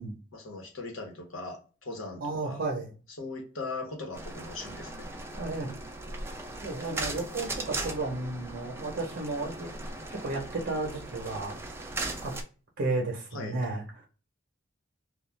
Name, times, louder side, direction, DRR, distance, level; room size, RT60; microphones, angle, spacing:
voice 1, 0.3-2.6 3.2-5.0 13.3-13.6, left 3 dB, 75° left, 1 dB, 1.0 m, -39 dB
voice 2, 2.2-2.9 5.3-5.7 6.6-9.7 10.1-11.6 12.2-12.3 12.8-13.8, right 2 dB, 60° right, -1 dB, 0.7 m, -33 dB
sound 1, 4.1-12.4, right 2 dB, 10° right, 0.3 m, -38 dB
2.3 x 2.3 x 3.1 m, 0.37 s
head